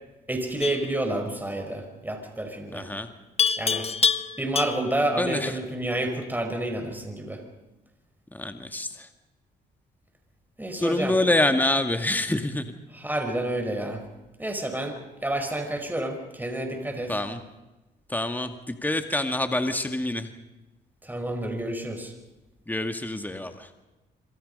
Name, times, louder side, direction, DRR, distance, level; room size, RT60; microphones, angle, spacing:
voice 1, 0.3-2.9 3.6-3.9 4.4-7.4 10.6-11.2 12.9-14.0 14.4-17.1 21.0-22.1, right 1 dB, 10° right, 4 dB, 5.4 m, -29 dB
Livestock farm animals working animals, 0.6-0.9 3.4-5.0, left 6 dB, 35° left, 1.2 m, -25 dB
voice 2, 2.7-3.1 5.2-5.6 8.3-9.1 10.8-12.7 17.1-17.4 18.1-20.3 22.7-23.7, left 1 dB, 10° left, 7 dB, 2.1 m, -26 dB
26.0 x 25.5 x 5.5 m, 1.1 s
supercardioid pair, 70°, 19 cm